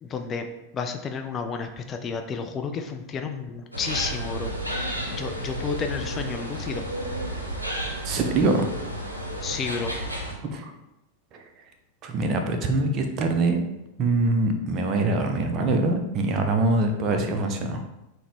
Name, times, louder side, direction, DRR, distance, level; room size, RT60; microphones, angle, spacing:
voice 1, 0.0-0.5 0.7-6.8 9.4-9.9, left 5 dB, 25° left, 5 dB, 0.3 m, -31 dB
sound 1, 3.7-10.3, right 1 dB, 85° right, 0.5 m, -32 dB
voice 2, 8.0-8.7 10.4-10.7 11.3-11.4 12.0-13.6 14.0-17.8, right 2 dB, 35° right, 5 dB, 0.4 m, -24 dB
3.8 x 2.1 x 3.0 m, 0.92 s
figure-of-eight pair, 90°, 0 cm